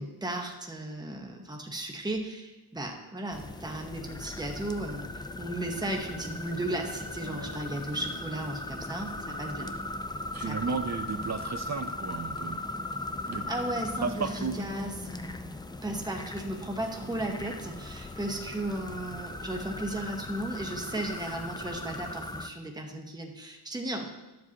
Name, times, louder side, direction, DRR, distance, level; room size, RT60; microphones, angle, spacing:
voice 1, 0.0-9.7 10.5-10.7 13.2-24.1, right 1 dB, 10° right, 2 dB, 1.0 m, -35 dB
sound 1, 3.3-22.5, left 2 dB, 10° left, 0.5 m, -38 dB
sound 2, 3.9-9.7, left 3 dB, 90° left, 1.3 m, -50 dB
voice 2, 7.2-7.6 10.3-12.6 13.3-13.5 14.0-14.6, right 5 dB, 40° right, 9 dB, 0.6 m, -34 dB
12.5 x 7.4 x 2.9 m, 1.1 s
wide cardioid pair, 90°, 40 cm